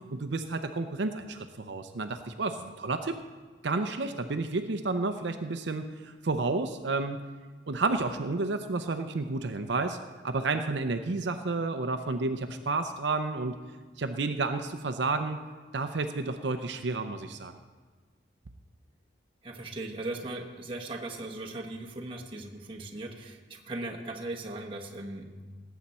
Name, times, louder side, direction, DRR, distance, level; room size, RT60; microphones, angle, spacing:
voice 1, 0.1-3.2 3.6-7.3 7.7-10.0 10.2-13.6 14.0-15.4 15.7-17.5, right 3 dB, 70° right, 7 dB, 0.6 m, -31 dB
voice 2, 19.4-25.3, right 2 dB, 25° right, 0 dB, 1.1 m, -38 dB
17.5 x 8.2 x 4.3 m, 1.4 s
head